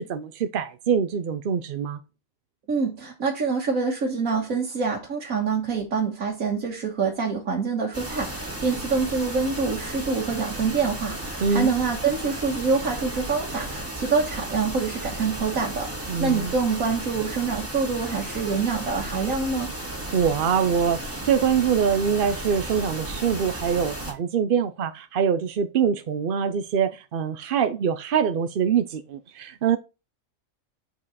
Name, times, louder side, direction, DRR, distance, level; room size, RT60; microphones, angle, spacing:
voice 1, 0.0-2.0 11.4-11.7 16.1-16.5 20.1-29.8, right 7 dB, 55° right, 0.6 m, -24 dB
voice 2, 2.7-19.7, right 5 dB, 85° right, 1.8 m, -26 dB
sound 1, 7.9-24.1, right 1 dB, 10° right, 2.1 m, -34 dB
7.4 x 4.6 x 4.0 m
omnidirectional pair, 1.4 m